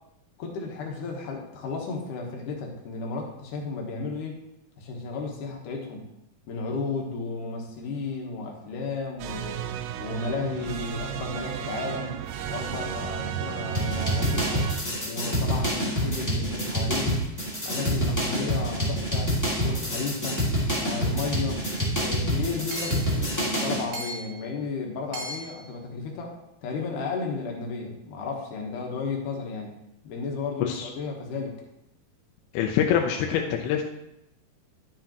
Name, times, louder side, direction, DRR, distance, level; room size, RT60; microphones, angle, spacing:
voice 1, 0.4-4.4 4.8-6.0 6.5-9.7 10.0-12.2 12.5-14.7 15.1-17.2 17.6-19.3 19.6-20.4 20.8-21.6 22.0-29.7 30.0-31.5, left 4 dB, 65° left, 1 dB, 2.4 m, -33 dB
sound 1, 9.2-14.8, right 9 dB, 80° right, 2.5 m, -33 dB
sound 2, 13.7-23.8, equal, 10° left, 1.0 m, -27 dB
Hammer / Chink clink, 21.8-21.9 22.7-23.1 23.9-24.4 25.1-25.6, right 1 dB, 60° right, 2.7 m, -37 dB
voice 2, 32.5-33.8, left 8 dB, 80° left, 2 dB, 2.6 m, -25 dB
11.0 x 7.6 x 3.0 m, 0.84 s
omnidirectional pair, 4.7 m